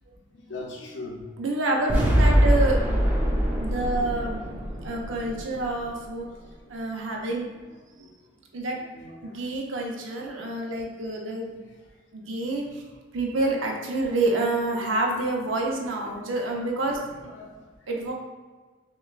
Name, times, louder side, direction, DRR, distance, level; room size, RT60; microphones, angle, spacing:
voice 1, 0.5-1.2 4.9-5.0 8.0-8.1 8.9-9.4 12.6-12.8 14.8-14.9 16.0-16.2 17.3-17.7, left 2 dB, 70° left, 0 dB, 0.7 m, -40 dB
voice 2, 1.4-2.9 3.6-4.4 4.8-6.3 6.7-7.5 8.5-8.8 9.2-11.5 12.1-12.8 13.1-17.1 17.9-18.1, right 2 dB, 85° right, 0 dB, 0.6 m, -28 dB
sound 1, 1.9-6.0, equal, 10° right, 0.6 m, -23 dB
6.2 x 2.2 x 2.4 m, 1.4 s
head